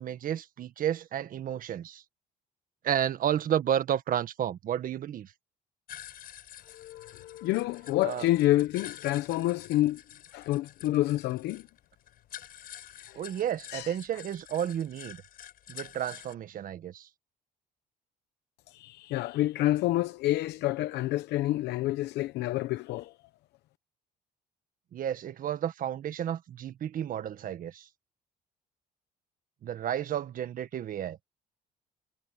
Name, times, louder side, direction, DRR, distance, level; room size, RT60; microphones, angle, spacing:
voice 1, 0.0-2.0 2.8-5.3 8.0-8.3 13.1-15.2 15.7-17.1 24.9-27.9 29.6-31.2, right 10 dB, 55° right, 1.7 m, -32 dB
sound 1, 5.9-16.3, left 11 dB, 60° left, 5.9 m, -48 dB
voice 2, 6.7-10.0 10.3-11.6 13.1-13.3 13.7-14.0 18.7-23.1, left 16 dB, 80° left, 0.9 m, -28 dB
cardioid pair, 110°, 17 cm